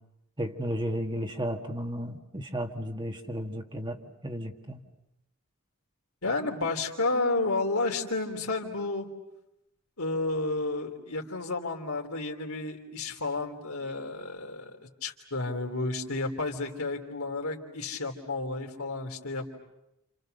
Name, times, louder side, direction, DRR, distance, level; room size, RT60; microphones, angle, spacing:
voice 1, 0.4-4.0 4.2-4.8, equal, 20° right, 4 dB, 1.8 m, -33 dB
voice 2, 6.2-9.1 10.0-19.5, left 3 dB, 75° left, 3 dB, 3.2 m, -31 dB
29.5 x 29.0 x 6.7 m, 0.87 s
head